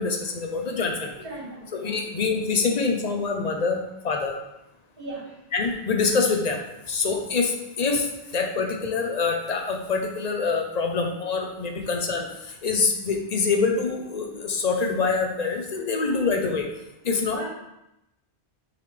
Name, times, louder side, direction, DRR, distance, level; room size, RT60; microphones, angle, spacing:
voice 1, 0.0-1.1 1.7-3.8 4.0-4.3 5.5-6.6 6.9-7.5 7.8-8.0 8.3-12.3 12.6-16.7 17.0-17.4, left 4 dB, 40° left, 3 dB, 0.8 m, -25 dB
voice 2, 1.2-2.0 5.0-5.4 16.0-16.2 17.3-17.4, right 2 dB, 55° right, -7 dB, 2.5 m, -38 dB
6.7 x 4.2 x 3.3 m, 0.88 s
omnidirectional pair, 1.2 m